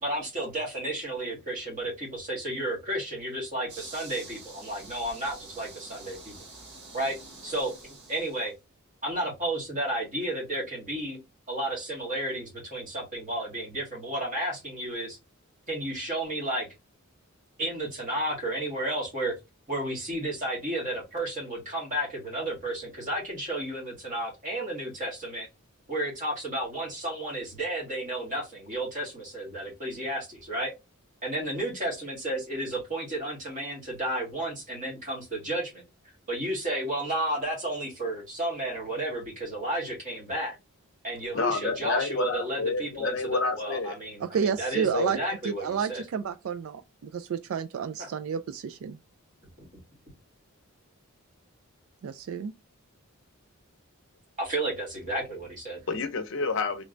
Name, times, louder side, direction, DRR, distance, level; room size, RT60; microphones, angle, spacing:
voice 1, 0.0-6.4 6.9-7.2 7.4-7.7 8.1-8.5 9.0-11.2 11.5-15.2 15.7-16.7 17.6-19.3 19.7-25.5 25.9-30.7 31.2-35.8 36.3-40.6 41.0-46.0 48.0-48.1 54.4-55.8, right 1 dB, 35° right, 1.7 m, -32 dB
sound 1, 3.7-8.5, right 3 dB, 50° right, 1.0 m, -47 dB
voice 2, 41.3-43.9 44.9-45.1 55.9-56.8, left 4 dB, 55° left, 0.6 m, -29 dB
voice 3, 44.2-45.2 45.4-49.0 52.0-52.5, right 7 dB, 70° right, 0.3 m, -30 dB
3.2 x 3.1 x 2.5 m
head